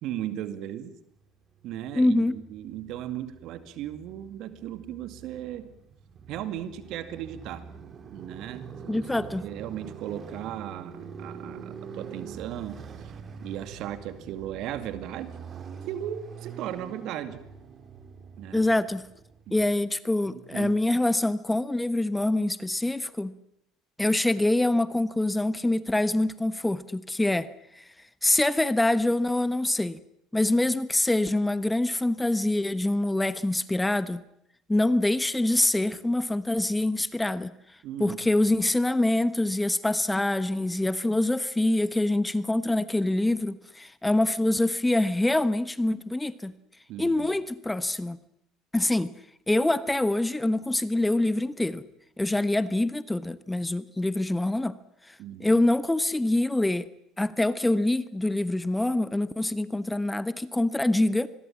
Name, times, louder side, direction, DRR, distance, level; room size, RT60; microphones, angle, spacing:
voice 1, 0.0-0.9 1.6-5.7 6.3-7.7 8.1-9.1 9.4-13.1 13.4-15.3 15.9-17.4 18.4-18.7 19.5-19.7 20.2-20.8 37.8-38.4 46.9-47.3 55.2-55.6, right 11 dB, 60° right, 11 dB, 2.2 m, -36 dB
Motorcycle, 1.5-19.7, right 6 dB, 40° right, 2.8 m, -45 dB
voice 2, 1.9-2.4 8.9-9.4 18.5-19.0 19.5-23.3 24.0-27.5 27.7-27.8 28.2-30.0 30.3-34.2 34.7-37.5 38.0-46.5 47.0-48.2 48.7-49.1 49.5-51.8 52.2-54.8 55.1-55.2 55.4-56.9 57.2-61.3, left 1 dB, 10° left, 15 dB, 1.1 m, -25 dB
26.0 x 21.5 x 7.4 m, 0.77 s
hypercardioid pair, 65°, 0 cm